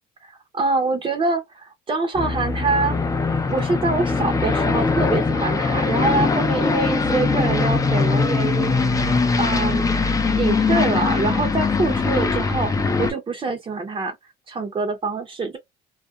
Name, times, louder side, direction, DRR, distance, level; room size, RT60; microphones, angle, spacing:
voice 1, 0.2-3.0 3.5-8.7 9.4-9.9 10.3-12.7 13.0-14.2 14.5-15.6, right 3 dB, 30° right, 0.7 m, -25 dB
Aircraft, 2.1-13.1, left 4 dB, 20° left, 0.5 m, -21 dB
2.4 x 2.1 x 2.5 m
cardioid pair, 110°, 17 cm